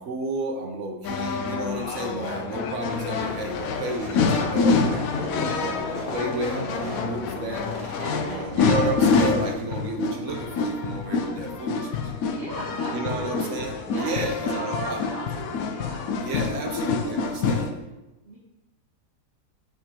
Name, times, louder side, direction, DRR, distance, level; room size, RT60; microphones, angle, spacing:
voice 1, 0.0-5.1 5.4-7.7 8.2-12.1 12.9-15.0 16.1-17.9, right 2 dB, 60° right, 3 dB, 0.9 m, -32 dB
sound 1, 1.0-17.7, left 4 dB, 70° left, 0.9 m, -27 dB
sound 2, 2.8-8.9, left 3 dB, 45° left, 1.6 m, -36 dB
voice 2, 5.4-5.8 8.0-8.5 12.2-16.1 18.2-18.4, right 1 dB, 40° right, -5 dB, 1.2 m, -37 dB
7.4 x 5.1 x 2.9 m, 1.0 s
omnidirectional pair, 1.7 m